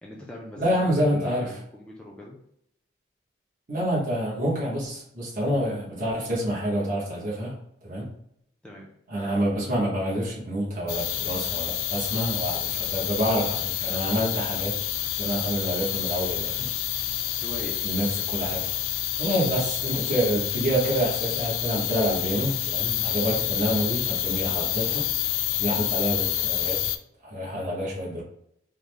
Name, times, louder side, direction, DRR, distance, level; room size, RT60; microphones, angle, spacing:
voice 1, 0.0-2.4 8.6-8.9 17.4-17.8 19.3-19.5, left 1 dB, 5° left, -3 dB, 0.3 m, -41 dB
voice 2, 0.6-1.5 3.7-7.6 7.8-8.1 9.1-14.8 15.2-16.7 17.8-18.6 19.2-25.1 25.6-26.8 27.2-28.2, equal, 40° right, -6 dB, 1.0 m, -27 dB
sound 1, 10.9-27.0, left 12 dB, 90° left, 0.3 m, -28 dB
3.6 x 2.0 x 3.2 m, 0.73 s
head